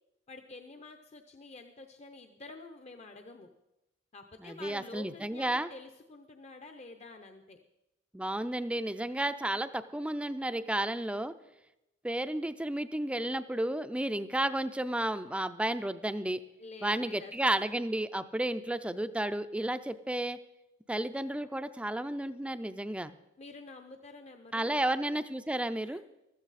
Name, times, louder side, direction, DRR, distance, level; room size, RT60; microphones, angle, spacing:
voice 1, 0.3-3.5 4.1-7.6 9.4-9.6 12.2-12.3 16.6-17.6 23.4-24.9 25.8-26.0, left 3 dB, 35° left, 6 dB, 0.7 m, -49 dB
voice 2, 4.4-5.7 8.1-11.3 12.0-16.4 16.8-20.4 20.9-23.1 24.5-26.0, right 1 dB, 5° right, 12 dB, 0.4 m, -32 dB
14.5 x 13.0 x 4.1 m, 0.92 s
head